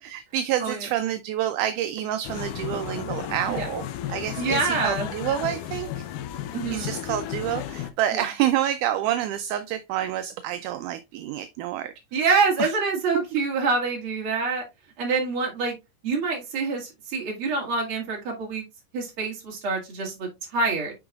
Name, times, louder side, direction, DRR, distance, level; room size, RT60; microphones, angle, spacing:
voice 1, 0.0-6.0 6.7-11.9 12.6-12.8, right 11 dB, 80° right, 2.0 m, -28 dB
sound 1, 2.2-7.9, left 11 dB, 80° left, 2.2 m, -33 dB
voice 2, 4.4-5.1 6.5-6.9 8.1-8.2 12.1-14.6 15.0-15.8 16.0-18.6 18.9-20.9, right 4 dB, 45° right, 2.6 m, -26 dB
8.7 x 4.7 x 2.4 m
omnidirectional pair, 3.8 m